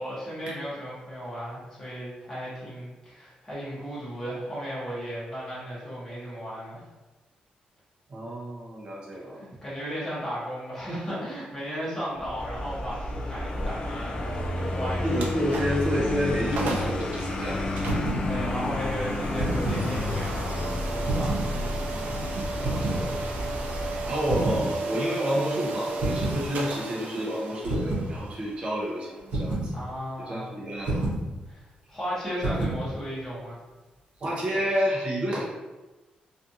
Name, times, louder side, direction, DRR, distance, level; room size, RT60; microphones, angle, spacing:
voice 1, 0.0-6.9 9.1-15.3 18.3-21.6 23.7-24.1 29.7-30.5 31.4-33.6, equal, 10° left, -10 dB, 0.9 m, -35 dB
voice 2, 8.1-9.4 15.0-17.6 21.5-22.0 22.6-23.2 24.1-29.7 30.2-31.1 34.2-35.4, equal, 40° right, -5 dB, 0.6 m, -29 dB
Vehicle, 12.1-24.4, left 1 dB, 40° left, 0.3 m, -31 dB
sound 1, 15.1-15.9 16.3-16.4 16.6-17.0 17.8-30.5, right 3 dB, 90° right, 0.4 m, -36 dB
sound 2, 17.8-18.3 19.2-19.9 21.0-21.5 22.6-23.0 24.3-24.7 26.0-26.4 27.6-28.1 29.3-29.7 30.8-31.2 32.4-32.8, right 2 dB, 70° right, 0.9 m, -28 dB
2.5 x 2.4 x 2.7 m, 1.2 s
wide cardioid pair, 165°, 3 cm